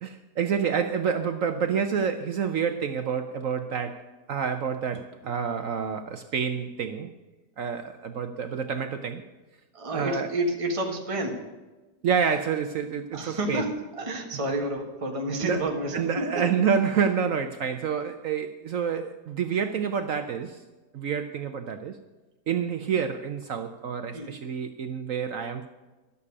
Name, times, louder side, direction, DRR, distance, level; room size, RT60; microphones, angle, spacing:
voice 1, 0.0-7.1 7.6-9.2 9.9-10.3 12.0-13.7 15.4-15.6 15.9-20.6 20.9-22.0 22.5-25.7, right 7 dB, 60° right, 8 dB, 1.0 m, -28 dB
voice 2, 9.7-11.5 13.1-16.5 24.1-24.3, right 1 dB, 20° right, 2 dB, 1.5 m, -30 dB
12.5 x 6.7 x 9.6 m, 1.2 s
omnidirectional pair, 1.8 m